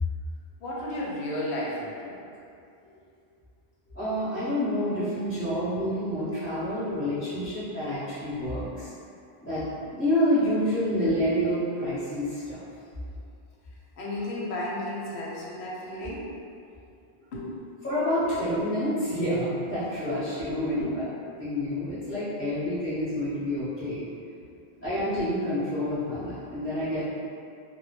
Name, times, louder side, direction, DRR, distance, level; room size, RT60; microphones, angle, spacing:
voice 1, 0.6-2.2 2.8-2.9 3.9-4.0 5.5-5.7 6.0-8.1 13.1-13.2 13.9-16.3 17.2-17.7 18.2-18.4 20.3-20.9 21.4-21.5 24.5-24.8 26.8-26.9, left 1 dB, 75° left, -6 dB, 0.9 m, -36 dB
voice 2, 3.9-8.9 9.4-12.6 17.8-20.8 21.4-24.1 24.8-27.0, equal, 15° left, -14 dB, 0.8 m, -28 dB
2.1 x 2.1 x 3.1 m, 2.5 s
omnidirectional pair, 1.1 m